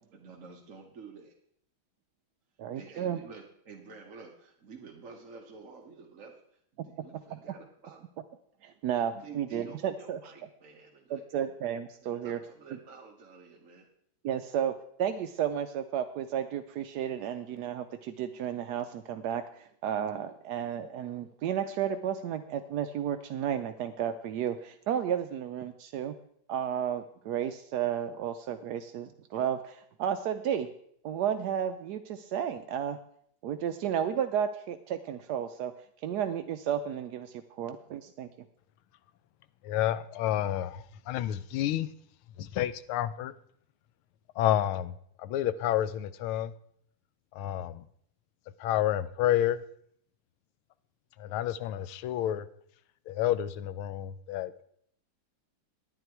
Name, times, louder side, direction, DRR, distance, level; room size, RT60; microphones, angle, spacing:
voice 1, 0.1-1.3 2.7-6.4 6.7-8.1 9.1-11.6 12.0-13.9, right 5 dB, 45° right, -1 dB, 1.3 m, -50 dB
voice 2, 2.6-3.2 7.3-7.4 8.6-10.2 11.1-12.4 14.2-26.1 26.5-30.7 31.0-33.0 33.4-35.7 36.0-38.3, right 9 dB, 80° right, 8 dB, 0.9 m, -32 dB
voice 3, 39.6-41.9 42.4-43.3 44.4-46.5 47.3-47.9 48.6-49.6 51.2-52.5 53.1-54.6, left 12 dB, 85° left, 15 dB, 1.5 m, -30 dB
10.0 x 9.7 x 4.6 m, 0.66 s
omnidirectional pair, 2.3 m